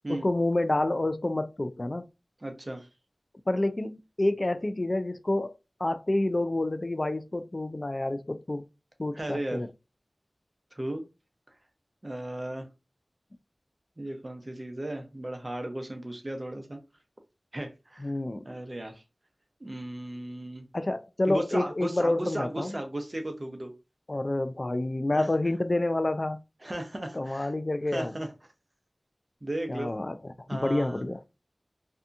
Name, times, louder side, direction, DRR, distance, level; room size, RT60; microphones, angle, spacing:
voice 1, 0.1-2.1 3.5-5.5 5.8-8.7 9.0-9.7 18.0-18.5 20.7-22.8 24.1-26.4 27.1-28.2 29.7-31.2, left 2 dB, 45° left, 0.3 m, -28 dB
voice 2, 2.4-2.9 9.1-9.6 10.7-11.0 12.0-12.7 14.0-16.8 17.5-18.1 18.4-19.0 19.6-20.7 21.3-23.7 25.1-25.3 26.6-27.5 27.9-28.3 29.4-29.9 30.5-31.0, right 1 dB, 40° right, 0.7 m, -35 dB
2.7 x 2.3 x 2.5 m
wide cardioid pair, 40°, 0 cm